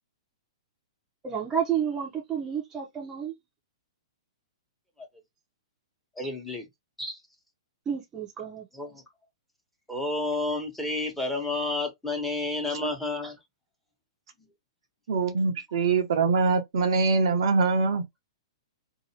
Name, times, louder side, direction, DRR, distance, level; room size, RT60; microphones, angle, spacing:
voice 1, 1.2-3.3 7.9-8.7, right 8 dB, 20° right, 0.8 m, -30 dB
voice 2, 6.2-6.7 7.0-7.2 8.7-9.0 9.9-13.4, left 2 dB, 5° left, 1.2 m, -30 dB
voice 3, 15.1-18.0, right 4 dB, 60° right, 0.7 m, -23 dB
2.7 x 2.7 x 2.9 m
hypercardioid pair, 120°, 3 cm